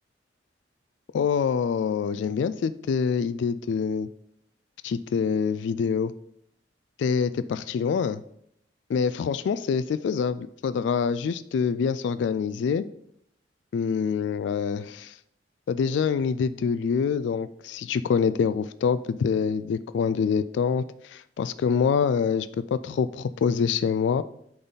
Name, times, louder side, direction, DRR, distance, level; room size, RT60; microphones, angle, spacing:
voice 1, 1.1-4.1 4.8-6.1 7.0-8.2 8.9-12.9 13.7-15.2 15.7-24.2, left 6 dB, 85° left, 14 dB, 0.3 m, -25 dB
8.7 x 4.0 x 4.0 m, 0.72 s
head